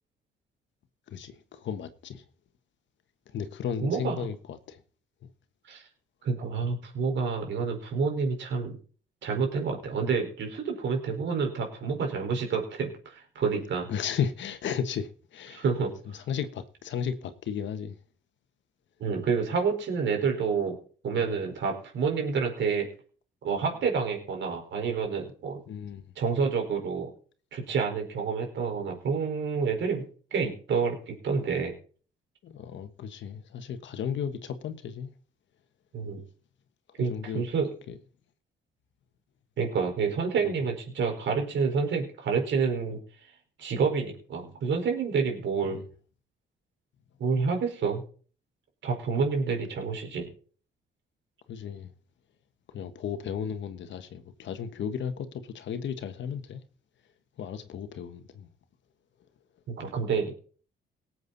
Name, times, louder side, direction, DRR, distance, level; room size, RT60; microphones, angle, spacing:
voice 1, 1.1-2.2 3.3-4.8 13.9-15.6 16.1-18.0 21.1-21.3 25.7-26.0 32.4-35.1 37.0-37.4 37.9-38.0 40.4-40.5 45.7-45.9 51.5-51.9 52.7-56.6 57.4-58.5, left 7 dB, 70° left, 1.5 m, -34 dB
voice 2, 3.8-4.2 5.7-5.9 6.2-8.8 9.2-13.9 15.5-15.9 19.0-20.8 21.0-22.9 23.4-25.6 26.2-27.1 27.5-30.1 30.3-31.7 35.9-36.2 37.0-37.7 39.6-43.3 43.6-45.8 47.2-48.0 48.8-50.3 59.7-60.3, right 5 dB, 65° right, 4.7 m, -28 dB
18.5 x 7.9 x 4.1 m
cardioid pair, 90°, 20 cm